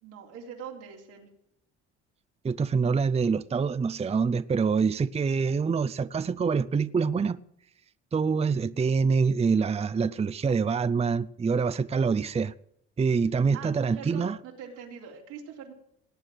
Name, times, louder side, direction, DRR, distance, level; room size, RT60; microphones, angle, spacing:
voice 1, 0.0-1.3 13.5-13.7 14.0-15.7, right 6 dB, 85° right, 3.6 m, -42 dB
voice 2, 2.4-7.4 8.1-12.5 13.0-14.4, right 5 dB, 20° right, 0.6 m, -25 dB
18.5 x 9.1 x 6.2 m
supercardioid pair, 70°, 30 cm